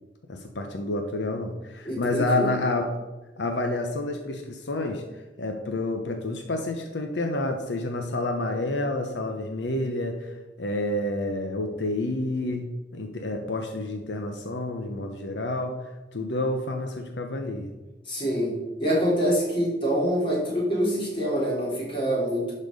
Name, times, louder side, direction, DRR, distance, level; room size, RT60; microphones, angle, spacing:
voice 1, 0.3-2.9 3.4-5.0 5.4-15.8 16.1-17.7, left 2 dB, 80° left, 4 dB, 0.9 m, -29 dB
voice 2, 1.8-2.5 18.0-22.5, equal, 30° left, -5 dB, 3.3 m, -25 dB
11.5 x 4.4 x 5.3 m, 1.1 s
head